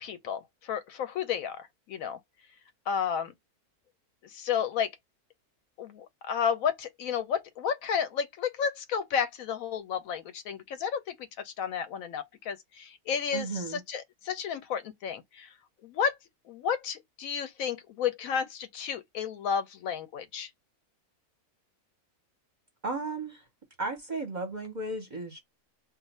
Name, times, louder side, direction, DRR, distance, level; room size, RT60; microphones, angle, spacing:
voice 1, 0.0-2.2 2.9-3.3 4.2-4.9 5.8-15.5 15.8-16.2 16.5-20.5, left 7 dB, 70° left, 0.9 m, -32 dB
voice 2, 13.3-13.8 22.8-23.4 23.8-25.4, right 3 dB, 40° right, 0.7 m, -34 dB
2.4 x 2.4 x 4.1 m
omnidirectional pair, 1.6 m